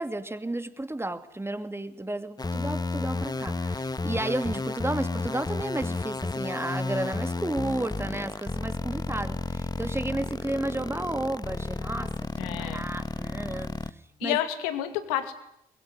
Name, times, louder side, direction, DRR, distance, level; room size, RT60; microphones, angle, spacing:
voice 1, 0.0-12.1 12.4-13.7 14.2-14.4, right 1 dB, 15° right, 10 dB, 2.6 m, -32 dB
sound 1, 2.4-13.9, left 3 dB, 20° left, 1.4 m, -32 dB
voice 2, 12.4-12.8 14.2-15.3, left 11 dB, 80° left, 9 dB, 2.4 m, -29 dB
23.5 x 22.0 x 9.9 m, 0.75 s
hypercardioid pair, 45°, 19 cm